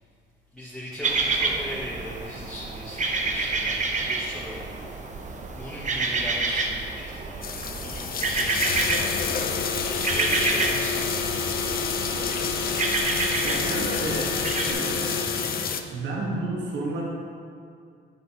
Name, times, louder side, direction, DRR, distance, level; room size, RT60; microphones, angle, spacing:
voice 1, 0.5-4.8 5.5-8.8 9.9-11.3, left 1 dB, 5° left, -9 dB, 1.7 m, -38 dB
sound 1, 1.0-14.7, right 3 dB, 40° right, 0.9 m, -29 dB
sound 2, 7.4-15.8, left 6 dB, 50° left, 0.6 m, -29 dB
sound 3, 8.3-15.8, left 4 dB, 85° left, 1.1 m, -32 dB
voice 2, 13.4-14.3 14.6-15.2 15.9-17.0, right 2 dB, 70° right, -3 dB, 1.5 m, -31 dB
9.8 x 7.4 x 2.9 m, 2.3 s
cardioid pair, 90°, 20 cm